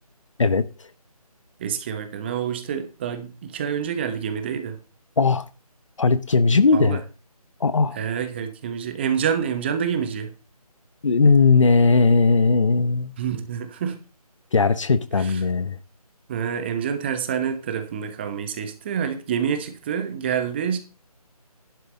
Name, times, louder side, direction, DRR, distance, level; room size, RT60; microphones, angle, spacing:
voice 1, 1.6-4.8 6.7-7.0 7.9-10.3 13.2-14.0 15.2-15.4 16.3-20.8, right 8 dB, 15° right, 1.1 m, -27 dB
voice 2, 5.2-5.5 6.0-7.0 7.6-8.0 11.0-13.1 14.5-15.8, left 4 dB, 55° left, 0.9 m, -18 dB
11.5 x 9.8 x 4.0 m
figure-of-eight pair, 160°, 20 cm